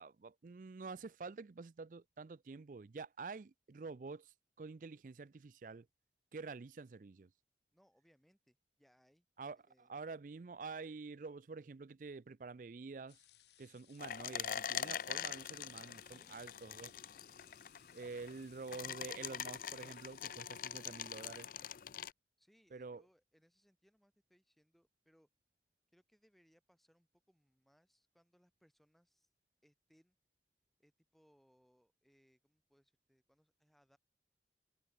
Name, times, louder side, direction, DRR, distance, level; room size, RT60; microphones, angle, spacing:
voice 1, 0.0-5.9 6.3-7.3 9.4-13.2 13.6-16.9 17.9-21.5 22.7-23.0, right 4 dB, 50° right, 0.4 m, -48 dB
voice 2, 7.7-9.3 9.7-9.9 16.1-16.8 22.4-25.3 25.9-29.3 29.6-30.1 30.8-34.0, equal, ahead, 6.5 m, -73 dB
sound 1, 13.1-21.5, left 13 dB, 80° left, 3.6 m, -66 dB
sound 2, 14.0-22.1, left 9 dB, 50° left, 0.4 m, -44 dB
head